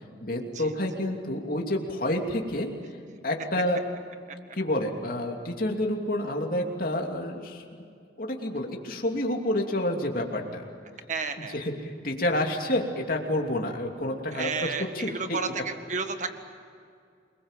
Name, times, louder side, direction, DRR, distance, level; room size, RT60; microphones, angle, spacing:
voice 1, 0.2-2.7 3.2-3.8 4.6-7.6 8.2-10.6 11.5-14.5 15.0-15.1, left 1 dB, 50° left, 1 dB, 2.9 m, -29 dB
voice 2, 11.1-11.6 14.3-16.4, right 4 dB, 40° right, 7 dB, 1.8 m, -32 dB
28.5 x 21.5 x 7.5 m, 2.3 s
head